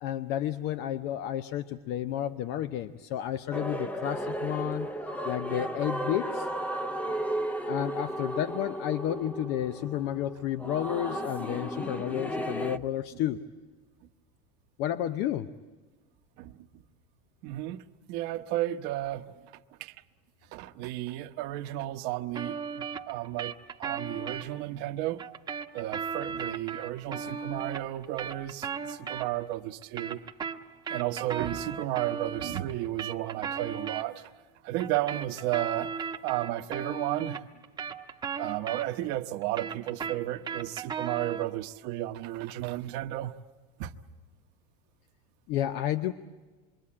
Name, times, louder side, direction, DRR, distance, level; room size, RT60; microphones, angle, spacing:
voice 1, 0.0-4.9 5.2-6.5 7.7-13.4 14.8-15.5 45.5-46.1, left 11 dB, 55° left, 0.8 m, -31 dB
sound 1, 3.5-12.8, right 1 dB, 5° left, 0.8 m, -34 dB
voice 2, 17.4-17.8 18.1-19.2 19.8-19.9 20.5-23.5 23.8-25.2 25.7-30.2 30.9-34.2 34.6-35.9 36.2-37.4 38.4-43.3 43.8-43.9, right 15 dB, 60° right, 1.0 m, -33 dB
sound 2, 22.3-24.4 25.2-29.5 29.8-34.0 34.8-39.1 39.4-41.5, right 6 dB, 20° right, 1.1 m, -36 dB
27.0 x 23.5 x 8.6 m
supercardioid pair, 145°, 20 cm